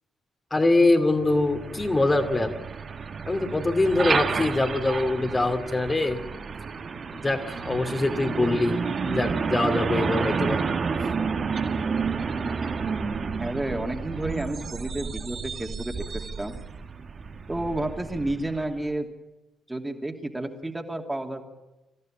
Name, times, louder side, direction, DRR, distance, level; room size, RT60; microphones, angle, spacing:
voice 1, 0.5-2.6 3.3-6.2 7.1-10.6, left 2 dB, 25° left, 5 dB, 2.5 m, -24 dB
Truck, 1.1-18.8, right 5 dB, 45° right, 1.7 m, -30 dB
voice 2, 13.4-16.6 17.5-19.1 19.7-21.4, right 1 dB, 15° right, 4 dB, 2.7 m, -31 dB
26.5 x 15.0 x 8.8 m, 1.0 s
hypercardioid pair, 40°, 0 cm